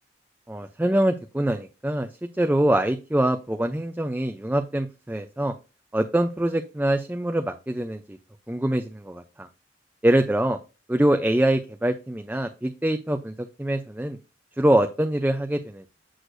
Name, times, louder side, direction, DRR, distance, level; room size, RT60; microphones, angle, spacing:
voice 1, 0.5-2.1 2.4-5.5 5.9-8.2 8.5-9.5 10.0-10.6 10.9-13.3 13.6-14.2 14.6-15.9, right 1 dB, 10° right, 6 dB, 0.4 m, -24 dB
8.0 x 6.3 x 2.6 m, 0.29 s
head